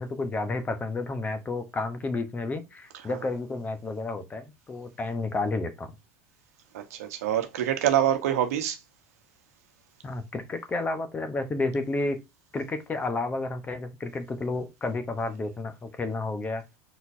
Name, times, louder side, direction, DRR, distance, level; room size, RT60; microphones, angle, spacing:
voice 1, 0.0-5.9 10.0-12.2 12.5-16.6, left 3 dB, 20° left, 0.9 m, -31 dB
voice 2, 6.7-8.8, right 10 dB, 85° right, 1.1 m, -25 dB
4.2 x 4.2 x 2.7 m
supercardioid pair, 120°, 8 cm